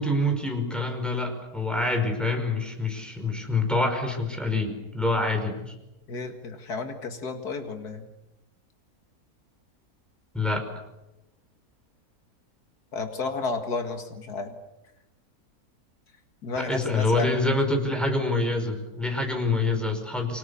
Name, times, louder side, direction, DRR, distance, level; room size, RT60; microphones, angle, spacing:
voice 1, 0.0-5.7 10.3-10.6 16.6-20.4, left 2 dB, ahead, 3 dB, 5.2 m, -26 dB
voice 2, 6.1-8.1 12.9-14.6 16.4-17.4, left 3 dB, 85° left, 5 dB, 2.5 m, -32 dB
29.5 x 25.0 x 7.1 m, 0.96 s
omnidirectional pair, 1.6 m